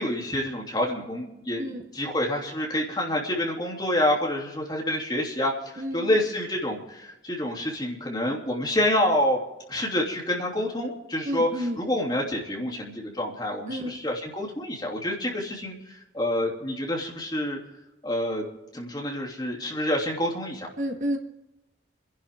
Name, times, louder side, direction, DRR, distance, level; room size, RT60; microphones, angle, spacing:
voice 1, 0.0-9.4 9.7-15.8 16.1-17.6 18.0-18.5 18.7-20.7, left 1 dB, 25° left, -1 dB, 3.0 m, -27 dB
voice 2, 5.8-6.1 11.2-11.8 13.7-14.0 20.8-21.2, equal, 40° right, 4 dB, 1.4 m, -30 dB
28.0 x 11.0 x 3.7 m, 0.92 s
head